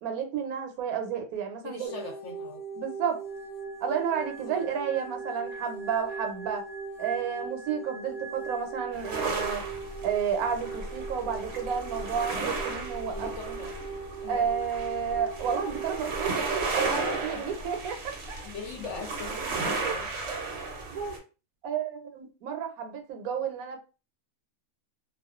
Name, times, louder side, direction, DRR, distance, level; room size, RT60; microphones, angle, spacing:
voice 1, 0.0-1.9 2.8-3.2 3.8-6.7 7.0-9.6 10.0-13.6 14.3-18.5 19.8-19.9 20.9-21.1 21.6-23.8, right 7 dB, 80° right, 5 dB, 1.0 m, -31 dB
voice 2, 1.6-2.6 4.5-4.7 13.1-13.7 14.2-14.5 17.3-17.6 18.4-20.1, left 5 dB, 65° left, 2 dB, 0.8 m, -41 dB
sound 1, 1.8-16.9, right 5 dB, 45° left, 0.5 m, -40 dB
sound 2, 3.3-9.6 9.9-10.2, right 3 dB, 15° left, 1.0 m, -45 dB
sound 3, 8.9-21.2, right 3 dB, 60° right, 0.8 m, -34 dB
2.3 x 2.2 x 2.3 m, 0.32 s
omnidirectional pair, 1.5 m